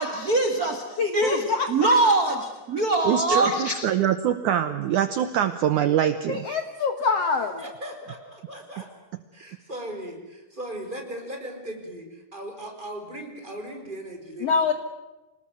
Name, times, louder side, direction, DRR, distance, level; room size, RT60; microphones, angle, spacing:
voice 1, 0.0-3.8, right 2 dB, 35° right, 6 dB, 1.6 m, -23 dB
voice 2, 1.0-1.9 6.3-7.5 14.4-14.7, left 5 dB, 60° left, 8 dB, 1.8 m, -25 dB
voice 3, 3.0-6.5, right 10 dB, 70° right, 11 dB, 2.0 m, -24 dB
voice 4, 7.6-8.9 9.3-14.7, right 1 dB, 10° right, 3 dB, 4.9 m, -38 dB
27.0 x 19.5 x 9.3 m, 1.1 s
omnidirectional pair, 4.4 m